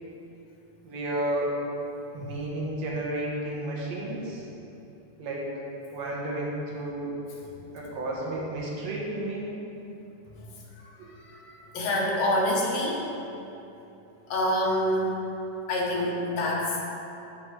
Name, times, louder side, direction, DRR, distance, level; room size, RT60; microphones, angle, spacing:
voice 1, 0.8-1.6 2.1-4.5 5.2-5.5 5.9-7.1 7.7-9.5 11.0-11.1, right 1 dB, 65° right, -4 dB, 2.1 m, -32 dB
voice 2, 11.3-13.0 14.3-15.1 15.7-16.8, left 1 dB, 65° left, -3 dB, 2.0 m, -27 dB
12.5 x 5.2 x 3.2 m, 2.9 s
omnidirectional pair, 3.8 m